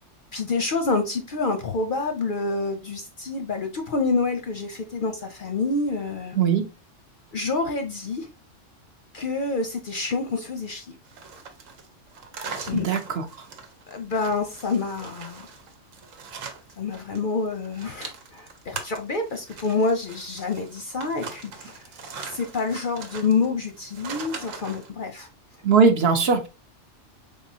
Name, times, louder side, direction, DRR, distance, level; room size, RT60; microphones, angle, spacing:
voice 1, 0.3-6.4 7.3-8.3 9.1-10.9 12.6-12.9 13.9-15.5 16.8-21.8 22.2-25.3, left 3 dB, 55° left, 0.6 m, -27 dB
voice 2, 6.4-6.7 12.7-13.5 25.6-26.5, right 5 dB, 60° right, 0.8 m, -20 dB
sound 1, 11.1-17.2 17.5-24.9, right 5 dB, 90° right, 1.2 m, -40 dB
5.0 x 3.6 x 2.7 m
omnidirectional pair, 1.3 m